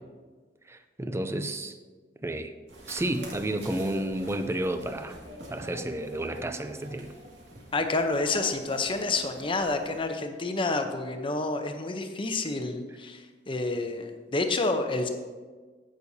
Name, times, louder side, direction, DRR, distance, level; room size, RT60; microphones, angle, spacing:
voice 1, 0.7-1.7 2.2-2.5 2.9-5.2 5.5-7.1, right 1 dB, 15° right, 9 dB, 0.5 m, -31 dB
sound 1, 2.7-10.0, equal, 80° right, 2.2 m, -45 dB
voice 2, 7.7-15.1, left 3 dB, 30° left, 6 dB, 0.7 m, -29 dB
15.5 x 6.4 x 2.8 m, 1.4 s
head